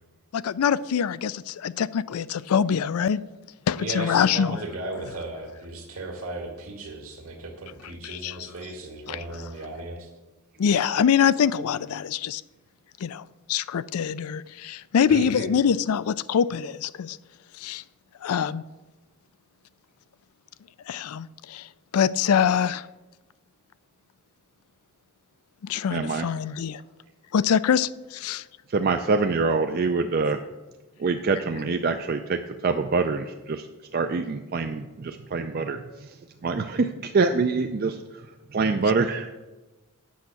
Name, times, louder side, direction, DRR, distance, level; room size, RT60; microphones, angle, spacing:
voice 1, 0.3-3.2 3.7-4.6 8.0-8.4 9.1-9.2 10.6-12.4 13.0-17.2 17.6-17.8 18.2-18.6 20.9-21.7 21.9-22.9 25.6-26.8 27.3-28.4, left 7 dB, 80° left, 18 dB, 0.4 m, -24 dB
voice 2, 3.8-10.1 15.1-15.5, right 2 dB, 70° right, 2 dB, 2.0 m, -36 dB
voice 3, 25.9-26.3 28.7-30.4 31.0-33.7 33.9-36.2 36.4-38.0 38.5-39.3, right 4 dB, 45° right, 6 dB, 0.4 m, -25 dB
8.4 x 5.7 x 7.5 m, 1.1 s
head